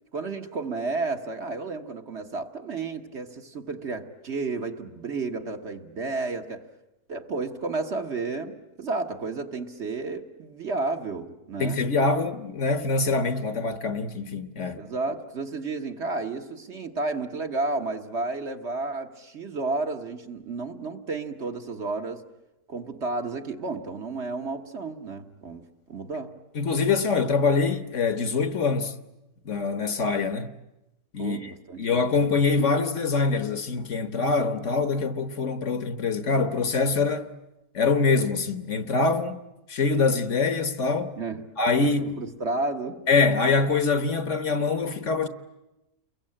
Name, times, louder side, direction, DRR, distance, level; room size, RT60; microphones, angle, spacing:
voice 1, 0.1-6.7 7.1-11.8 14.8-22.2 22.7-25.6 25.9-26.4 31.2-32.1 41.2-41.5 41.8-43.1, right 3 dB, 50° right, 1.7 m, -32 dB
voice 2, 11.6-14.8 26.5-28.9 29.4-30.6 31.1-31.5 31.8-37.3 37.7-39.4 39.7-41.1 41.6-42.2 43.1-45.3, left 4 dB, 55° left, 1.4 m, -24 dB
29.5 x 22.5 x 8.7 m
omnidirectional pair, 1.6 m